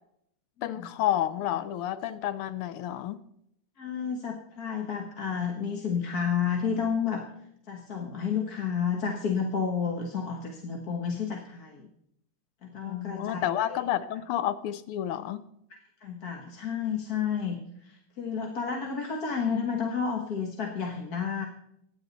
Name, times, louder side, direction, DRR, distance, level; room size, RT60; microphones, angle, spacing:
voice 1, 0.6-3.2 12.8-15.4, left 11 dB, 85° left, 14 dB, 1.6 m, -30 dB
voice 2, 3.8-7.2 7.7-11.9 12.6-13.8 15.7-21.5, left 6 dB, 50° left, 1 dB, 1.7 m, -31 dB
23.5 x 9.8 x 4.0 m, 0.75 s
omnidirectional pair, 2.4 m